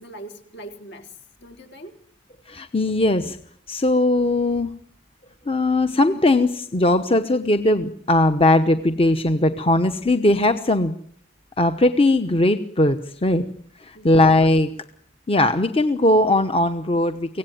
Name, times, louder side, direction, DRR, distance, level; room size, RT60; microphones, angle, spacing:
voice 1, 0.0-2.0 13.9-14.3, right 1 dB, 60° left, 5 dB, 4.1 m, -41 dB
voice 2, 2.5-3.4 3.7-4.7 5.5-10.9 11.6-13.5 13.8-14.7 15.3-17.4, left 2 dB, 30° left, 9 dB, 1.1 m, -19 dB
24.5 x 17.5 x 9.3 m, 0.63 s
head